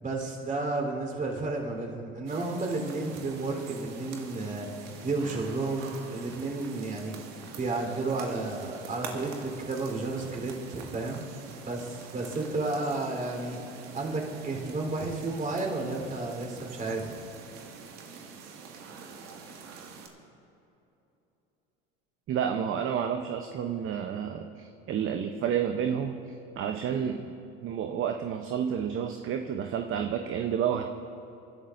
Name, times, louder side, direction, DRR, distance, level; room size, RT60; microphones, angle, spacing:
voice 1, 0.0-7.2 7.6-11.2 11.7-17.1, right 3 dB, 25° right, 1 dB, 3.8 m, -32 dB
sound 1, 2.2-20.1, right 5 dB, 60° right, 2.0 m, -45 dB
voice 2, 22.3-27.4 27.6-30.9, right 8 dB, 45° right, 5 dB, 0.8 m, -30 dB
28.5 x 11.5 x 2.6 m, 2.9 s
hypercardioid pair, 85°, 30 cm